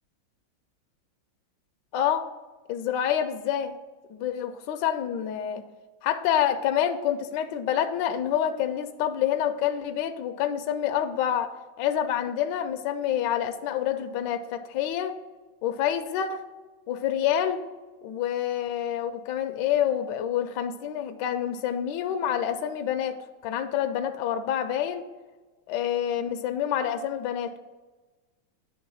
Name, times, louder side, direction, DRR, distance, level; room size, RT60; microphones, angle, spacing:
voice 1, 1.9-2.3 2.7-3.7 4.1-5.6 6.0-15.1 15.6-16.4 16.9-17.6 18.0-23.2 23.4-25.1 25.7-27.5, left 10 dB, 75° left, 7 dB, 1.0 m, -27 dB
9.5 x 3.2 x 6.1 m, 1.3 s
omnidirectional pair, 2.3 m